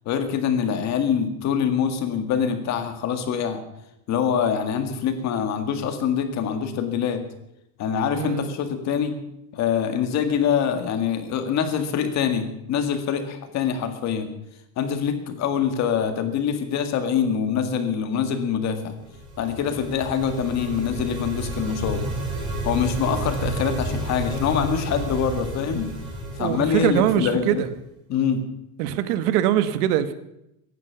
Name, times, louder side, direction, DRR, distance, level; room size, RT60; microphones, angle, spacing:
voice 1, 0.1-3.6 4.1-7.2 7.8-9.2 9.5-14.3 14.8-19.0 19.4-22.0 22.6-25.9 26.4-27.6 28.1-28.4, left 7 dB, 35° left, 7 dB, 2.0 m, -24 dB
voice 2, 8.1-8.5 26.4-27.7 28.8-30.1, right 11 dB, 85° right, 12 dB, 1.5 m, -22 dB
sound 1, 18.9-27.7, right 1 dB, 10° right, 6.0 m, -31 dB
16.5 x 10.5 x 7.1 m, 0.83 s
cardioid pair, 165°, 45 cm